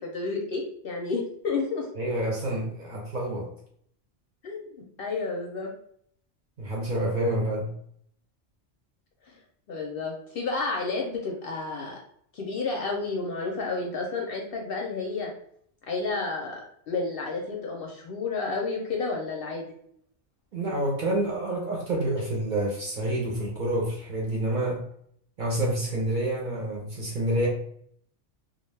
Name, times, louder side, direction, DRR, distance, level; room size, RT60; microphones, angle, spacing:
voice 1, 0.0-1.9 4.4-5.7 9.3-9.4 9.7-12.0 12.3-15.3 15.9-16.6 16.9-19.7, left 3 dB, 60° left, 0 dB, 0.6 m, -31 dB
voice 2, 2.0-3.5 6.6-7.7 20.5-24.8 25.4-27.5, right 1 dB, 50° right, -3 dB, 0.6 m, -28 dB
2.3 x 2.2 x 3.2 m, 0.65 s
omnidirectional pair, 1.3 m